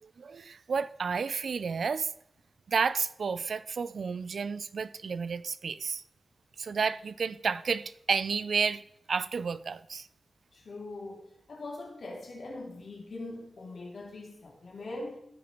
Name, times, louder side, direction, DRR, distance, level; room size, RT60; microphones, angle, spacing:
voice 1, 0.0-2.1 2.7-6.0 6.6-8.8 9.1-10.1, right 5 dB, 70° right, 0.4 m, -31 dB
voice 2, 10.5-15.2, left 2 dB, 65° left, 2.9 m, -42 dB
15.0 x 5.1 x 4.5 m
wide cardioid pair, 140°, 0 cm